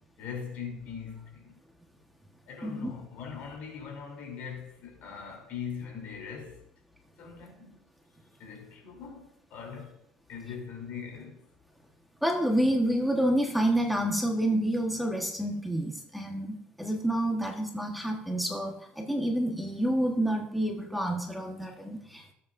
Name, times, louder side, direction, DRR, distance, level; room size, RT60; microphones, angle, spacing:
voice 1, 0.0-1.6 2.5-6.6 7.2-7.8 8.4-10.0 10.3-11.5, left 6 dB, 65° left, 3.4 m, -41 dB
voice 2, 2.6-2.9 12.2-22.3, right 1 dB, ahead, 1.4 m, -28 dB
17.5 x 8.3 x 2.6 m
cardioid pair, 135°, 3 cm